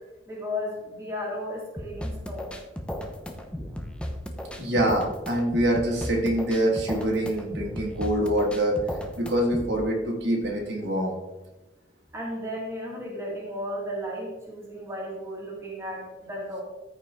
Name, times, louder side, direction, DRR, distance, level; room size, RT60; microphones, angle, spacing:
voice 1, 0.3-2.5 12.1-16.6, left 1 dB, 15° right, -4 dB, 2.1 m, -34 dB
sound 1, 1.8-9.8, equal, 5° left, 0.8 m, -35 dB
voice 2, 4.6-8.8 9.1-11.2, right 1 dB, 65° right, -2 dB, 2.2 m, -25 dB
14.0 x 4.9 x 3.8 m, 1.1 s
head